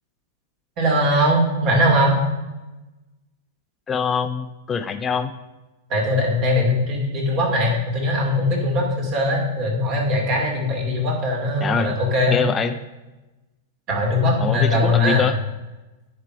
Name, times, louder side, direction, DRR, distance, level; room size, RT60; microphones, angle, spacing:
voice 1, 0.8-2.2 5.9-12.4 13.9-15.3, left 1 dB, 45° right, 0 dB, 2.7 m, -20 dB
voice 2, 3.9-5.3 11.6-11.9 12.3-12.8 14.4-15.3, left 6 dB, 20° left, 7 dB, 0.5 m, -24 dB
9.7 x 4.7 x 4.8 m, 1.1 s
hypercardioid pair, 105°, 0 cm